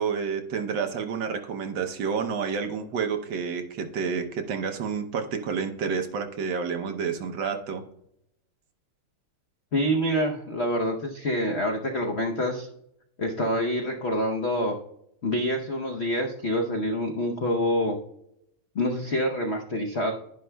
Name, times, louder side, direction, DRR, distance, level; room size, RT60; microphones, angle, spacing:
voice 1, 0.0-7.8, right 6 dB, 65° right, 5 dB, 1.4 m, -29 dB
voice 2, 9.7-12.7 13.2-14.8 15.2-18.0 18.7-20.1, equal, 75° left, 2 dB, 0.6 m, -26 dB
10.5 x 10.5 x 2.2 m, 0.76 s
omnidirectional pair, 2.4 m